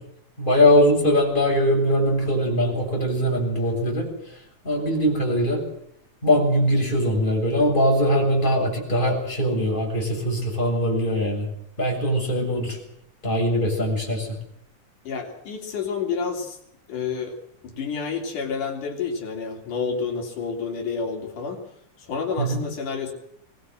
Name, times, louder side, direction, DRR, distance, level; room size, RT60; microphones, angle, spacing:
voice 1, 0.4-4.1 4.6-5.6 6.2-11.5 11.8-12.8 13.2-14.3 22.4-22.6, equal, 15° left, -1 dB, 7.4 m, -21 dB
voice 2, 15.0-16.6 16.9-17.4 17.6-21.6 22.0-23.1, left 5 dB, 80° left, 2 dB, 4.8 m, -29 dB
23.0 x 19.5 x 7.7 m, 0.73 s
omnidirectional pair, 3.6 m